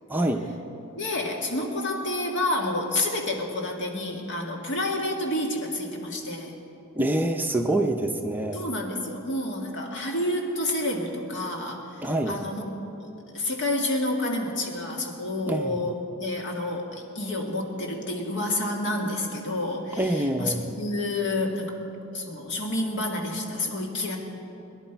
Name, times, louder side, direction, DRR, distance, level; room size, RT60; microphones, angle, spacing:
voice 1, 0.1-0.4 6.9-8.6 12.0-12.4 15.5-15.8 20.0-20.7, right 1 dB, 10° right, 3 dB, 0.6 m, -25 dB
voice 2, 1.0-6.5 8.5-12.7 13.0-21.9 22.1-24.2, left 1 dB, 60° left, 1 dB, 1.9 m, -29 dB
22.5 x 11.0 x 4.6 m, 2.9 s
head